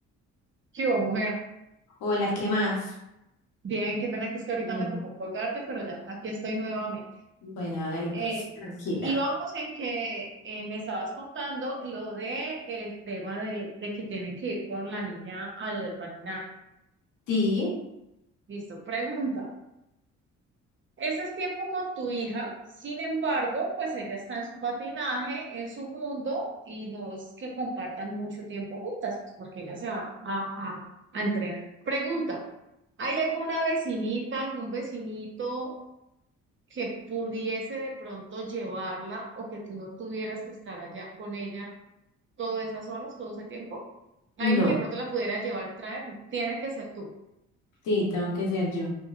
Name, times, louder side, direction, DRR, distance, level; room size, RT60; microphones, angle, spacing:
voice 1, 0.7-1.4 3.6-7.0 8.1-8.4 9.0-16.5 18.5-19.5 21.0-22.5 22.8-30.8 31.1-31.6 31.8-32.4 33.0-35.7 36.7-41.7 42.4-43.8 44.4-47.1, right 2 dB, 40° right, -1 dB, 0.9 m, -32 dB
voice 2, 2.0-2.9 4.6-4.9 7.4-8.3 8.6-9.1 17.3-17.7 44.4-44.8 47.8-49.0, left 1 dB, 90° left, -4 dB, 1.0 m, -27 dB
2.9 x 2.7 x 2.4 m, 0.87 s
cardioid pair, 90°, 30 cm